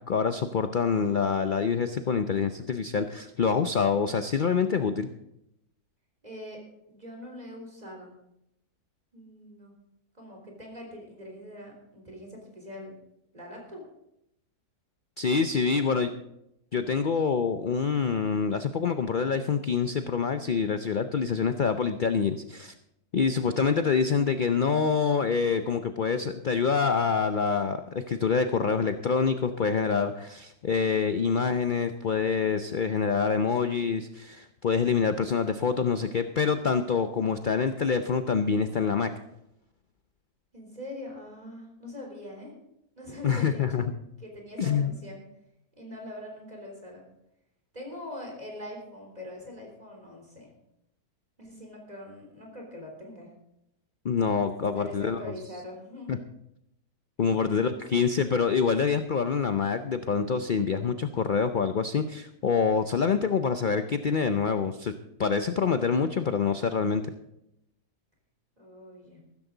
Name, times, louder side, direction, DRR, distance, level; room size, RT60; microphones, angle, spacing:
voice 1, 0.1-5.1 15.2-16.1 16.7-22.7 23.1-39.1 43.2-43.8 44.6-44.9 54.0-55.2 56.1-56.2 57.2-64.9 65.2-67.0, left 6 dB, 85° left, 9 dB, 0.4 m, -26 dB
voice 2, 6.2-6.6 6.9-8.1 9.1-9.7 10.1-13.0 13.3-13.8 40.5-42.5 43.0-43.9 44.2-45.2 45.8-47.1 47.7-50.5 51.4-53.3 54.7-56.3 68.6-69.2, left 1 dB, 25° right, 0 dB, 3.8 m, -43 dB
14.5 x 13.5 x 3.9 m, 0.83 s
omnidirectional pair, 1.7 m